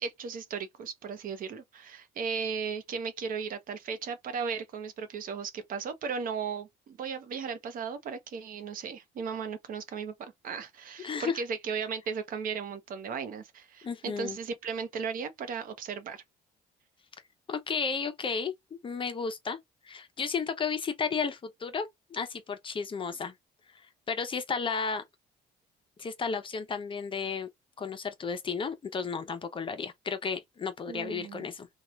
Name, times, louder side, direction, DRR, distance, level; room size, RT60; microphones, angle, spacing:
voice 1, 0.0-16.2 30.9-31.5, right 6 dB, 55° right, 0.8 m, -36 dB
voice 2, 11.0-11.4 13.8-14.4 17.5-19.6 19.8-23.3 24.1-25.0 26.0-27.5 27.8-31.7, left 5 dB, 30° left, 0.6 m, -33 dB
2.8 x 2.3 x 3.2 m
cardioid pair, 110°, 17 cm